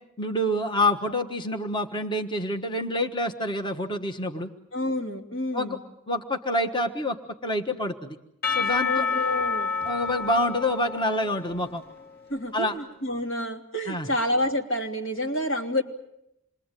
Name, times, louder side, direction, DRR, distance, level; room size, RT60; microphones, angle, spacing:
voice 1, 0.2-4.5 5.5-5.8 6.1-7.2 7.4-8.2 8.5-9.1 9.8-11.8 12.5-12.8 13.9-14.1, left 1 dB, 25° left, 3 dB, 1.3 m, -27 dB
voice 2, 4.7-5.8 8.9-9.7 12.3-15.8, left 1 dB, 75° left, 2 dB, 3.2 m, -28 dB
Percussion / Church bell, 8.4-12.4, left 5 dB, 55° left, 2.0 m, -29 dB
28.0 x 22.0 x 9.1 m, 0.82 s
head